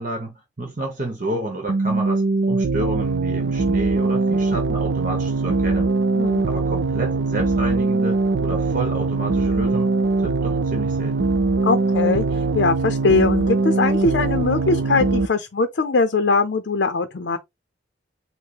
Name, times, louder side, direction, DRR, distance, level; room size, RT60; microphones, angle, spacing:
voice 1, 0.0-5.9 6.4-9.9 10.2-11.3, right 2 dB, 45° right, 1.0 m, -30 dB
sound 1, 1.7-15.3, right 3 dB, 75° right, 0.5 m, -21 dB
voice 2, 11.6-17.4, left 4 dB, 70° left, 0.6 m, -21 dB
4.7 x 2.1 x 4.6 m
head